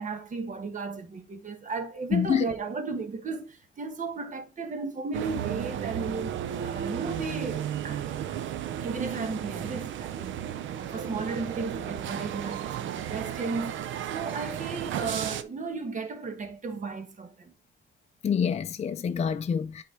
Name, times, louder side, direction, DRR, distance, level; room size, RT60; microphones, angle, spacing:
voice 1, 0.0-8.1 8.8-17.5, right 4 dB, 40° right, 1.3 m, -35 dB
voice 2, 2.1-2.4 18.2-19.8, left 7 dB, 35° left, 0.5 m, -26 dB
sound 1, 5.1-15.4, right 10 dB, 70° right, 0.6 m, -34 dB
8.1 x 4.3 x 3.4 m
cardioid pair, 90°, 20 cm